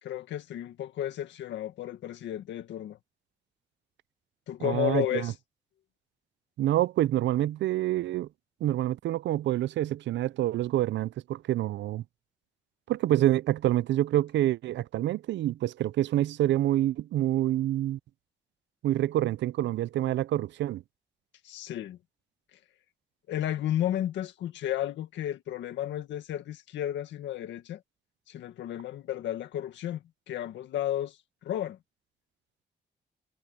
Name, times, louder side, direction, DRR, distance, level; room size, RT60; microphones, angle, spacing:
voice 1, 0.0-3.0 4.5-5.3 21.4-22.0 23.3-27.8 28.3-31.8, left 11 dB, 90° left, 1.8 m, -33 dB
voice 2, 4.6-5.3 6.6-8.3 8.6-12.0 12.9-18.0 18.8-20.8, right 13 dB, 85° right, 0.5 m, -27 dB
supercardioid pair, 55°, 18 cm